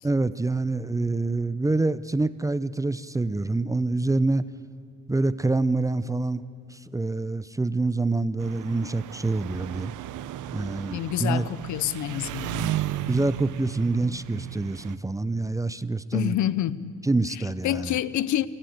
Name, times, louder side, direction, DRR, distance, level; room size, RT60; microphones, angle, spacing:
voice 1, 0.0-4.4 5.1-6.4 6.7-9.9 10.5-11.5 13.1-16.4 17.1-17.9, right 2 dB, 10° right, 0.5 m, -26 dB
Engine, 8.4-15.0, right 12 dB, 85° right, 0.7 m, -34 dB
voice 2, 10.9-12.8 16.1-16.9 17.3-18.5, left 12 dB, 75° left, 0.7 m, -28 dB
28.5 x 13.5 x 7.9 m
cardioid pair, 90°, 30 cm